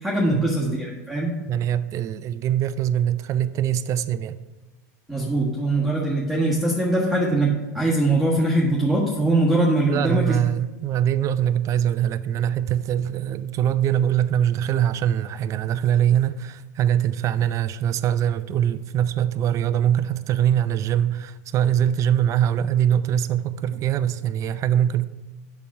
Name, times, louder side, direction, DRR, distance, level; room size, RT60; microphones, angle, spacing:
voice 1, 0.0-1.3 5.1-10.2, right 2 dB, ahead, -6 dB, 1.4 m, -22 dB
voice 2, 1.5-4.4 9.9-25.1, right 10 dB, 35° right, 14 dB, 0.4 m, -23 dB
7.0 x 5.9 x 4.8 m, 1.1 s
hypercardioid pair, 115°, 9 cm